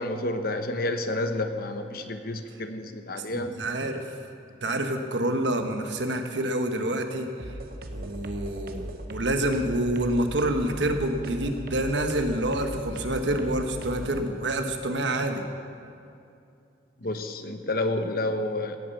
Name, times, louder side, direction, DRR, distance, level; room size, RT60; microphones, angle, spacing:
voice 1, 0.0-3.5 17.0-18.8, left 2 dB, 55° left, 7 dB, 1.0 m, -30 dB
voice 2, 3.3-4.1 4.6-7.3 7.9-15.4, right 1 dB, 80° right, 6 dB, 1.3 m, -27 dB
sound 1, 7.4-14.2, right 1 dB, 55° right, 1.1 m, -38 dB
17.0 x 8.9 x 7.1 m, 2.6 s
head